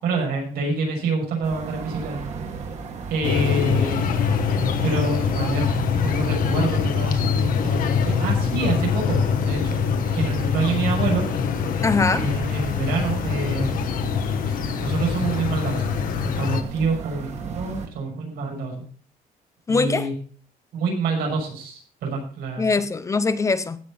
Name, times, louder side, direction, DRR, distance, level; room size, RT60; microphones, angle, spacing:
voice 1, 0.0-2.2 3.1-4.1 4.8-9.8 10.1-11.3 12.1-13.9 14.5-15.9 16.2-18.8 19.7-20.1 20.7-22.8, right 3 dB, 90° right, 0 dB, 6.6 m, -27 dB
sound 1, 1.4-17.9, right 5 dB, 45° right, 2.0 m, -36 dB
sound 2, 3.2-16.6, left 7 dB, 65° left, 1.2 m, -24 dB
voice 2, 11.8-12.3 19.7-20.1 22.6-23.8, left 4 dB, 20° left, 13 dB, 0.6 m, -22 dB
16.0 x 6.0 x 5.7 m, 0.43 s
cardioid pair, 175°, 16 cm